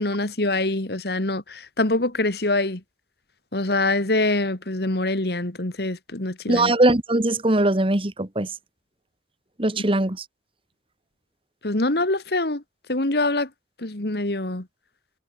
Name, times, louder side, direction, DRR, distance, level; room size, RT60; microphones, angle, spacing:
voice 1, 0.0-2.8 3.5-6.7 11.6-12.6 12.9-13.5 13.8-14.7, left 2 dB, 65° left, 2.2 m, -24 dB
voice 2, 6.5-8.5 9.6-10.2, right 1 dB, 30° right, 1.6 m, -20 dB
head